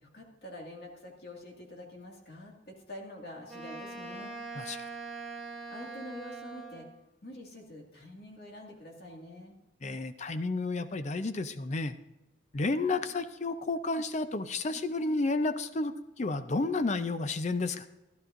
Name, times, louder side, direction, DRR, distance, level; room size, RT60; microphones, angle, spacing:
voice 1, 0.0-4.3 5.7-6.9 7.2-9.5, left 1 dB, 55° left, 0 dB, 2.1 m, -46 dB
Wind instrument woodwind instrument, 3.5-7.0, right 3 dB, ahead, 2.6 m, -42 dB
voice 2, 4.6-4.9 9.8-12.0 12.5-17.9, left 3 dB, 40° left, 11 dB, 0.5 m, -31 dB
15.0 x 11.5 x 2.6 m, 1.0 s
head